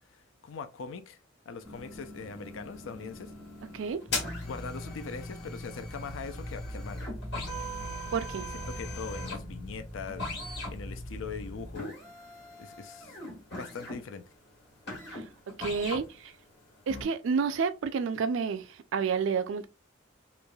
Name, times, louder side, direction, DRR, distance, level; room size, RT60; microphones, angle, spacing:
voice 1, 0.1-1.2 1.5-3.3 4.1-7.1 8.7-12.0 12.6-13.2 13.5-14.2, left 5 dB, 75° left, 0.4 m, -41 dB
sound 1, 1.6-16.2 16.5-17.0, left 1 dB, 60° left, 1.3 m, -41 dB
sound 2, 4.1-11.8, equal, 10° left, 0.5 m, -41 dB
voice 2, 8.1-8.5 15.1-15.2 15.6-16.3 16.9-19.7, right 5 dB, 70° right, 0.4 m, -30 dB
3.1 x 2.5 x 2.2 m
head